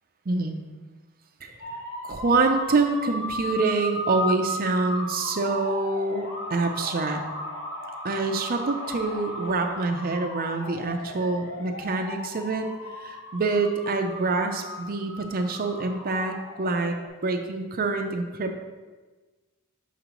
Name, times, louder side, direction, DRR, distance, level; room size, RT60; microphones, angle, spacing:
voice 1, 0.3-0.6 1.4-1.6 2.0-7.2 8.0-12.7 12.9-16.9 17.2-18.5, right 3 dB, 40° right, 5 dB, 0.6 m, -26 dB
sound 1, 1.6-17.1, left 1 dB, 65° left, 1.1 m, -36 dB
6.5 x 5.1 x 3.0 m, 1.3 s
head